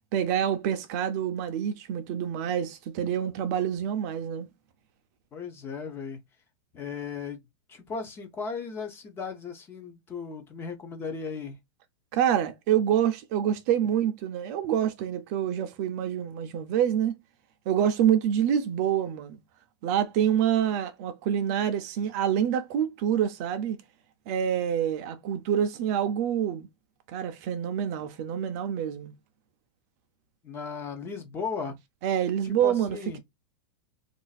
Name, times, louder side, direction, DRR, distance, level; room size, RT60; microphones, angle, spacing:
voice 1, 0.1-4.5 12.1-17.1 17.7-19.4 19.8-23.8 24.3-26.7 27.1-29.1 32.0-33.0, right 9 dB, 35° right, 0.4 m, -26 dB
voice 2, 5.3-6.2 6.7-7.4 7.7-11.6 30.4-31.8 32.4-33.2, left 5 dB, 15° left, 0.5 m, -36 dB
2.5 x 2.4 x 3.9 m
supercardioid pair, 165°, 15 cm